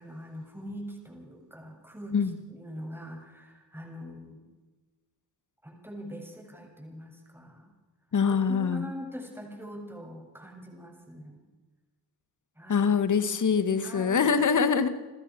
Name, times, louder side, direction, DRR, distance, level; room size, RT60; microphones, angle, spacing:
voice 1, 0.0-2.2 2.5-4.4 5.6-7.7 8.2-11.4 12.6-12.9 13.8-14.3, equal, 5° right, 1 dB, 7.2 m, -42 dB
voice 2, 8.1-8.9 12.7-14.9, left 6 dB, 50° left, 11 dB, 2.2 m, -24 dB
28.5 x 14.0 x 6.4 m, 1.2 s
supercardioid pair, 65°, 39 cm